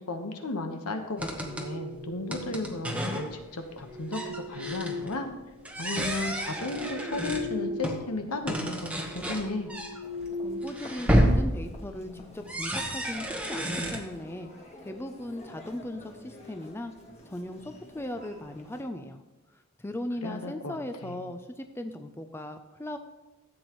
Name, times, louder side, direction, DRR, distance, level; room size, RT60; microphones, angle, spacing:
voice 1, 0.0-5.3 5.8-9.7 20.2-20.8 21.0-21.3, left 2 dB, 85° left, 5 dB, 1.2 m, -34 dB
sound 1, 1.1-2.6 3.6-5.7 6.2-8.0 8.3-8.6 9.1-11.4, left 2 dB, 85° right, 1.0 m, -39 dB
sound 2, 1.2-1.8 2.3-3.4 3.7-3.8 4.1-5.2 5.7-8.1 8.5-14.0, equal, 5° right, 0.9 m, -30 dB
Human voice, 10.0-18.8, left 1 dB, 30° left, 1.6 m, -50 dB
voice 2, 10.4-14.5 14.8-16.9 17.3-19.2 19.5-23.0, left 1 dB, 10° left, 7 dB, 0.4 m, -38 dB
14.0 x 8.0 x 3.1 m, 1.0 s
head